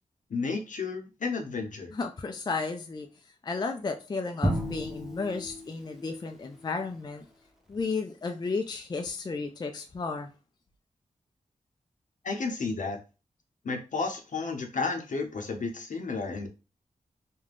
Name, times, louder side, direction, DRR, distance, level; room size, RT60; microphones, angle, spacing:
voice 1, 0.3-1.9 12.2-13.0 13.6-16.5, left 4 dB, 65° left, 0.7 m, -32 dB
voice 2, 1.9-3.1 3.4-7.3 7.7-10.3, left 4 dB, 30° left, 0.3 m, -33 dB
Drum, 4.4-6.4, equal, ahead, 0.9 m, -32 dB
2.4 x 2.2 x 3.3 m
cardioid pair, 55°, 14 cm